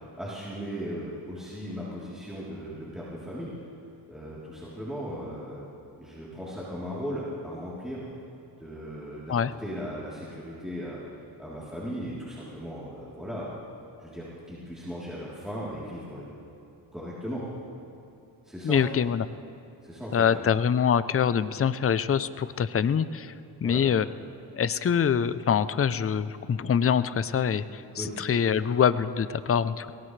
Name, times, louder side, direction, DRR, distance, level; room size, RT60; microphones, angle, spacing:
voice 1, 0.2-3.5 4.1-5.7 6.0-8.1 8.6-11.0 11.4-13.6 14.0-16.3 16.9-17.4 18.5-18.8 19.8-20.4 23.6-23.8 28.0-28.2, equal, ahead, -8 dB, 3.5 m, -37 dB
voice 2, 18.6-19.3 20.1-23.3 23.6-24.1 24.5-29.9, left 7 dB, 35° left, 14 dB, 0.6 m, -25 dB
22.0 x 18.0 x 3.3 m, 2.8 s
cardioid pair, 70°, 40 cm